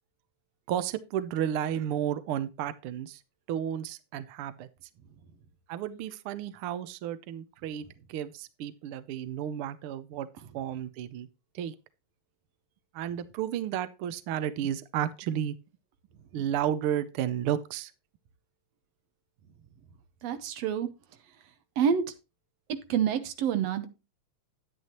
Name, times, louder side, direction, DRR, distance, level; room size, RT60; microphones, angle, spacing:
voice 1, 0.7-3.2 3.5-4.7 5.7-10.3 10.5-11.3 11.5-11.7 12.9-15.5 16.3-17.9, right 10 dB, 90° right, 1.2 m, -32 dB
voice 2, 20.2-20.9 21.8-22.0 22.9-23.9, right 8 dB, 65° right, 1.9 m, -27 dB
10.0 x 9.3 x 3.0 m
omnidirectional pair, 3.4 m